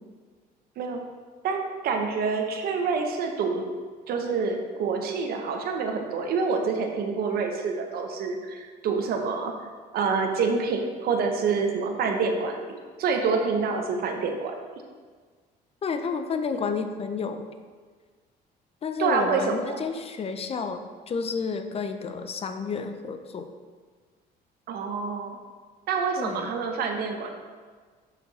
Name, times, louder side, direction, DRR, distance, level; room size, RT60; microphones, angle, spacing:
voice 1, 1.4-3.6 4.1-9.5 9.9-14.5 19.0-19.8 24.7-25.4 25.9-27.3, right 5 dB, 65° right, 3 dB, 0.9 m, -27 dB
voice 2, 15.8-17.4 18.8-20.8 21.1-23.5 26.2-26.7, left 5 dB, 35° left, 7 dB, 0.6 m, -31 dB
6.3 x 5.8 x 4.1 m, 1.5 s
cardioid pair, 110°, 17 cm